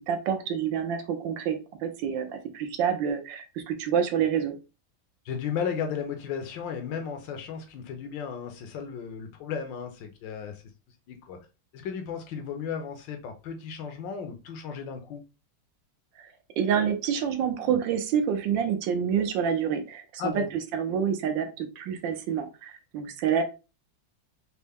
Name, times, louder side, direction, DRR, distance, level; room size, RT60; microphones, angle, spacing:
voice 1, 0.1-4.6 16.2-16.3 16.6-20.4 20.7-23.4, right 8 dB, 80° right, 1.3 m, -27 dB
voice 2, 5.2-10.6 11.1-11.4 11.7-15.2 20.2-20.5, left 7 dB, 75° left, 1.3 m, -34 dB
4.3 x 2.0 x 3.4 m
omnidirectional pair, 2.1 m